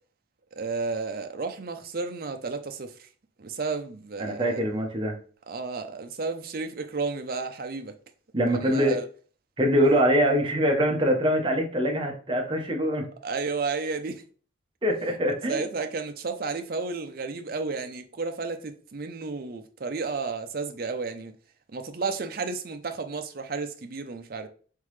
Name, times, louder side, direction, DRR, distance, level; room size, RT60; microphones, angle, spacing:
voice 1, 0.5-3.1 3.4-4.6 5.5-8.0 8.4-9.1 13.2-14.2 15.1-15.2 15.5-21.3 21.7-24.5, right 4 dB, 45° right, 0.5 m, -32 dB
voice 2, 4.2-5.1 8.3-9.0 9.6-13.0 14.8-15.6, equal, 25° right, 0.8 m, -23 dB
3.7 x 3.7 x 3.2 m
head